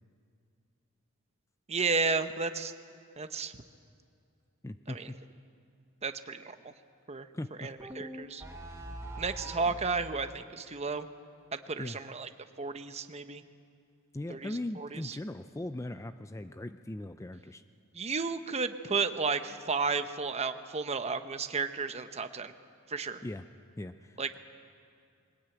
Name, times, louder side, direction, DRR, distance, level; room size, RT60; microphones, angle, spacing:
voice 1, 1.7-2.7 3.2-3.5 4.9-5.0 6.0-6.7 7.1-7.3 7.6-8.4 9.2-11.1 11.5-12.3 12.6-13.4 14.3-15.2 17.9-22.5 22.9-23.2 24.2-24.4, right 4 dB, 30° right, 9 dB, 0.9 m, -33 dB
voice 2, 4.6-5.2 7.3-7.7 11.8-12.0 14.1-17.6 23.2-23.4 23.8-24.4, left 1 dB, 15° left, 10 dB, 0.4 m, -39 dB
sound 1, 7.8-9.9, right 1 dB, 15° right, 1.5 m, -42 dB
21.5 x 18.5 x 9.1 m, 2.4 s
head